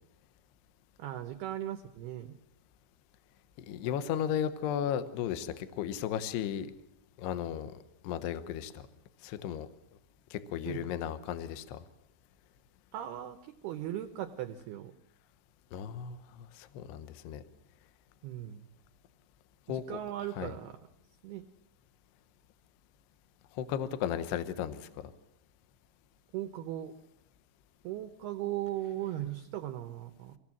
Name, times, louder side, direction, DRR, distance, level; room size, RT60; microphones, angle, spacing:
voice 1, 1.0-2.3 10.7-10.8 12.9-13.4 13.6-14.9 18.2-18.6 19.7-20.8 21.2-21.5 26.3-26.9 27.8-30.4, right 13 dB, 85° right, 7 dB, 2.2 m, -38 dB
voice 2, 3.7-6.7 7.2-7.7 8.0-8.8 9.2-9.7 10.3-11.8 15.7-16.2 16.6-17.4 19.7-20.0 20.3-20.6 23.6-24.9, left 9 dB, 70° left, 11 dB, 2.7 m, -35 dB
25.0 x 18.0 x 7.4 m, 0.79 s
omnidirectional pair, 5.9 m